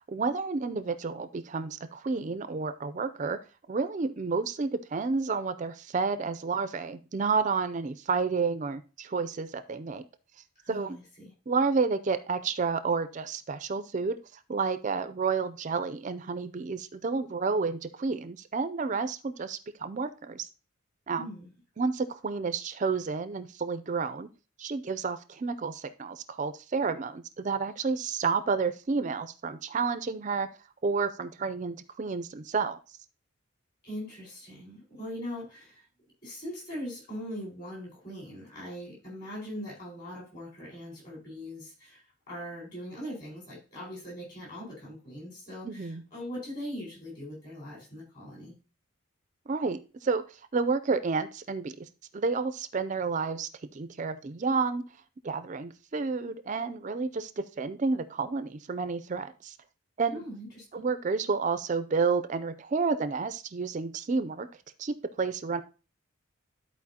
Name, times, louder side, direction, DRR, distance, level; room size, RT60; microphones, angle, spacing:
voice 1, 0.1-3.4 3.7-10.0 10.7-11.0 11.5-14.2 14.5-20.5 21.1-21.3 21.8-24.3 24.6-30.5 30.8-32.8 45.6-46.0 49.5-51.9 52.1-54.8 55.2-59.6 60.0-60.2 60.7-64.5 64.8-65.6, right 4 dB, 35° right, 11 dB, 0.4 m, -30 dB
voice 2, 10.6-11.3 21.2-21.5 33.8-35.8 36.2-48.5 60.1-60.8, equal, 40° left, -4 dB, 4.5 m, -41 dB
13.0 x 4.4 x 2.8 m, 0.33 s
head